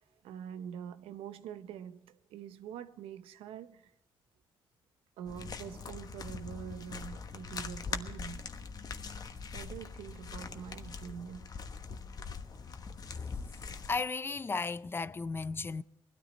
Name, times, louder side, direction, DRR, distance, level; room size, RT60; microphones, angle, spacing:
voice 1, 0.0-3.9 5.2-8.5 9.5-11.5 12.2-12.4, right 8 dB, 90° right, 0.7 m, -45 dB
sound 1, 5.3-14.0, left 5 dB, 45° left, 1.2 m, -42 dB
voice 2, 13.1-13.5 13.9-15.8, left 4 dB, 25° left, 0.4 m, -35 dB
19.5 x 13.0 x 4.1 m
cardioid pair, 90°, 9 cm